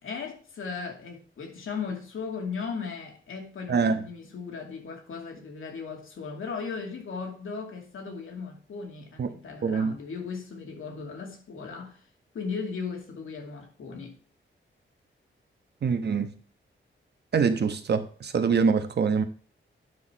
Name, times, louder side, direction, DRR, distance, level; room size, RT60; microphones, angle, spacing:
voice 1, 0.0-12.0 12.3-14.2, left 5 dB, 85° left, 2.5 m, -37 dB
voice 2, 3.7-4.0 9.2-9.3 9.6-9.9 15.8-16.3 17.3-19.2, right 5 dB, 55° right, 1.2 m, -24 dB
9.4 x 6.3 x 4.5 m
wide cardioid pair, 130°, 20 cm